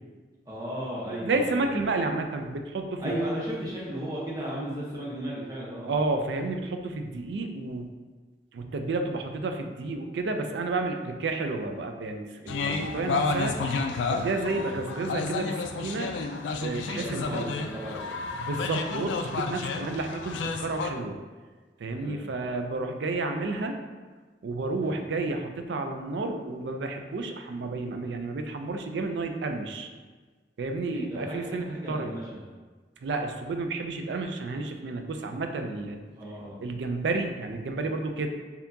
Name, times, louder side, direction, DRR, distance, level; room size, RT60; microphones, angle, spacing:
voice 1, 0.5-1.8 3.0-5.9 12.4-12.8 14.4-14.7 16.7-18.2 19.7-20.0 22.0-22.3 24.8-25.0 30.9-32.4 36.2-36.6, right 1 dB, 20° right, -6 dB, 0.8 m, -35 dB
voice 2, 1.1-3.0 5.9-7.9 8.5-13.6 14.1-16.1 16.6-17.5 18.3-21.2 21.8-23.8 24.4-29.9 30.6-32.1 33.0-36.0 36.6-38.3, right 3 dB, 75° right, 5 dB, 0.4 m, -31 dB
sound 1, 12.5-20.9, left 4 dB, 90° left, 0.3 m, -31 dB
4.2 x 2.8 x 2.7 m, 1.4 s
head